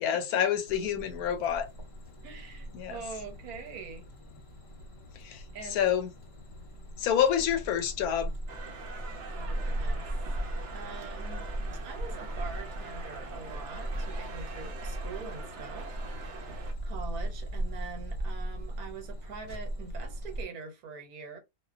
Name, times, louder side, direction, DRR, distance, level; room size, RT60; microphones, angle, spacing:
voice 1, 0.0-1.7 2.7-3.0 5.2-5.4 5.7-6.1 7.0-8.3, left 9 dB, 85° left, 1.1 m, -28 dB
sound 1, 0.7-20.4, right 1 dB, 50° left, 0.9 m, -38 dB
voice 2, 2.2-4.1 5.5-5.8 9.3-10.1 10.7-11.4 11.8-21.4, right 5 dB, 80° right, 1.2 m, -44 dB
sound 2, 8.5-16.7, right 4 dB, 65° right, 0.7 m, -44 dB
2.4 x 2.2 x 2.3 m
omnidirectional pair, 1.5 m